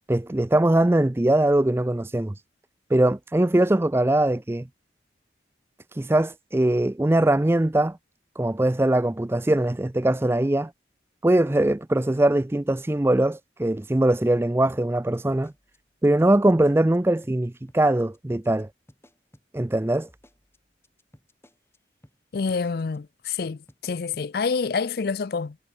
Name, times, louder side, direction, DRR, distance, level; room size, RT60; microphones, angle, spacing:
voice 1, 0.1-2.3 2.9-4.7 5.9-8.0 8.4-10.7 11.2-15.5 16.0-18.7 19.5-20.1, right 1 dB, 15° right, 0.4 m, -21 dB
sound 1, 14.8-17.0 17.2-17.4 17.7-18.2 18.4-18.6 18.9-21.8 22.0-22.2 22.5-23.0 23.2-23.4 23.7-24.3, equal, 15° left, 7.0 m, -55 dB
voice 2, 22.3-25.6, left 5 dB, 55° left, 0.4 m, -27 dB
head